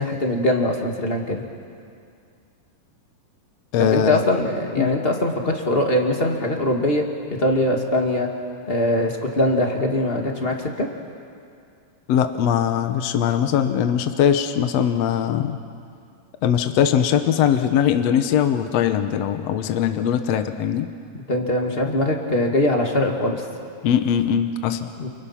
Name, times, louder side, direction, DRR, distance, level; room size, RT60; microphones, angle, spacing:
voice 1, 0.0-1.4 3.8-7.0 7.4-8.3 8.7-10.9 21.3-23.4 25.0-25.1, left 1 dB, 20° left, 2 dB, 1.6 m, -22 dB
voice 2, 3.7-4.2 4.8-4.9 12.1-15.6 16.4-20.9 23.8-24.9, left 9 dB, 65° left, 8 dB, 1.8 m, -21 dB
29.5 x 29.0 x 5.8 m, 2.3 s
omnidirectional pair, 3.9 m